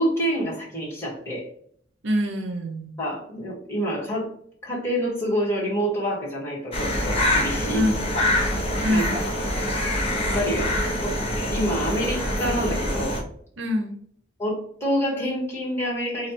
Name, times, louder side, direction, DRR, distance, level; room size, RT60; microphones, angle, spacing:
voice 1, 0.0-1.5 3.0-4.3 4.6-7.8 8.1-8.2 8.9-9.2 10.2-10.7 11.0-11.2 11.5-13.2 14.4-16.3, equal, 15° left, -6 dB, 1.4 m, -27 dB
voice 2, 2.0-3.0 7.7-8.0 8.8-9.2 13.6-14.0, equal, 75° right, 4 dB, 0.7 m, -25 dB
sound 1, 6.7-13.2, left 1 dB, 30° left, 0.8 m, -25 dB
3.2 x 2.3 x 4.3 m, 0.63 s
head